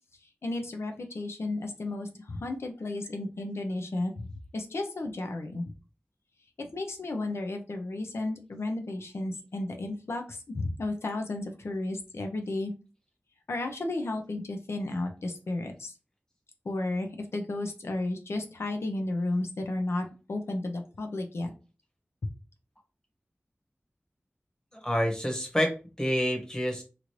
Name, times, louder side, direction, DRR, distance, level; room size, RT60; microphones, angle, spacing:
voice 1, 0.4-4.3 4.5-5.7 6.6-12.7 13.5-15.9 16.6-21.5, left 2 dB, 85° left, 4 dB, 0.5 m, -33 dB
voice 2, 24.7-26.8, equal, 15° left, 2 dB, 1.1 m, -28 dB
3.0 x 2.5 x 3.0 m, 0.32 s
wide cardioid pair, 70°, 4 cm